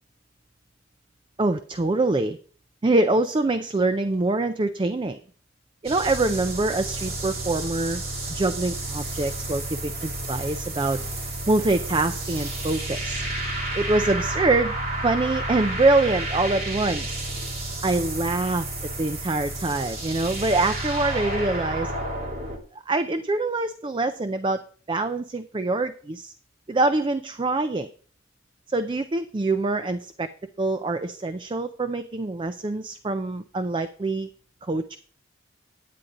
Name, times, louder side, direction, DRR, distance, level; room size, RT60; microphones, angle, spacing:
voice 1, 1.4-2.4 2.8-5.2 5.8-8.0 8.3-11.0 11.5-13.2 13.7-14.7 15.0-17.2 17.8-18.7 19.0-21.9 22.7-24.6 24.9-26.3 26.7-27.9 28.7-30.3 30.6-34.3 34.7-35.0, right 2 dB, 25° right, 10 dB, 0.4 m, -24 dB
sound 1, 5.8-22.6, right 1 dB, 45° right, 2.6 m, -31 dB
10.0 x 9.3 x 3.7 m, 0.43 s
head